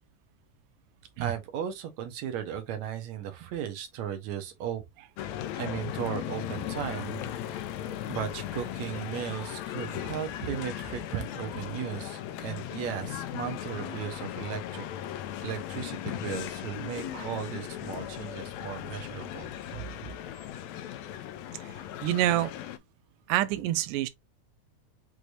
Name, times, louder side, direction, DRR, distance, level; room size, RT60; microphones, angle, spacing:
voice 1, 1.2-4.8 5.5-7.2 8.1-14.9 15.4-19.5, right 9 dB, 70° right, 2.0 m, -36 dB
sound 1, 5.2-22.8, left 11 dB, 75° left, 1.8 m, -37 dB
voice 2, 22.0-22.5 23.3-24.1, right 14 dB, 85° right, 2.1 m, -26 dB
6.2 x 3.3 x 2.6 m
omnidirectional pair, 3.6 m